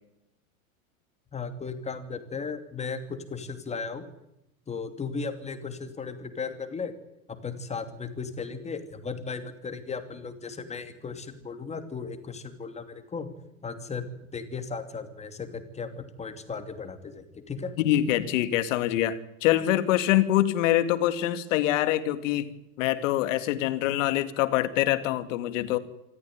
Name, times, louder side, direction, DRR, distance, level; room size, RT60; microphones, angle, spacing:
voice 1, 1.3-4.0 4.7-6.9 7.3-13.3 13.6-14.1 14.3-17.7, left 5 dB, 15° left, 8 dB, 2.8 m, -36 dB
voice 2, 17.8-25.8, left 13 dB, 60° left, 11 dB, 2.4 m, -25 dB
26.0 x 14.0 x 9.5 m, 0.87 s
supercardioid pair, 135°, 43 cm